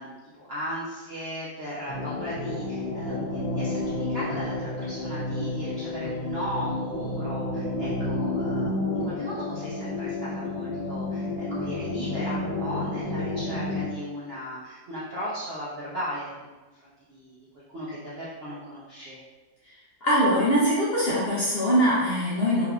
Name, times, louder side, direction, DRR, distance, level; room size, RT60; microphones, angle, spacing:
voice 1, 0.0-16.5 16.8-19.2, equal, 60° right, -8 dB, 0.6 m, -37 dB
sound 1, 1.9-13.9, left 2 dB, 75° left, 1.3 m, -30 dB
voice 2, 20.0-22.7, equal, 50° left, -8 dB, 0.8 m, -22 dB
3.4 x 3.3 x 2.4 m, 1.2 s
omnidirectional pair, 1.8 m